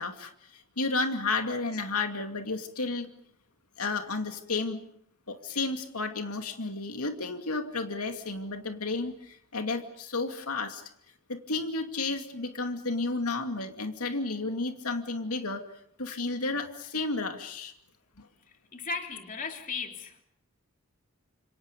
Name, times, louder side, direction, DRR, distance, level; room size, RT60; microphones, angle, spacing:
voice 1, 0.0-3.1 3.8-4.8 5.3-10.8 11.3-15.6 16.0-17.7 18.2-18.3, left 3 dB, 85° left, 5 dB, 2.5 m, -32 dB
voice 2, 18.7-20.2, left 4 dB, 35° left, 4 dB, 3.1 m, -36 dB
30.0 x 27.5 x 5.3 m, 0.69 s
head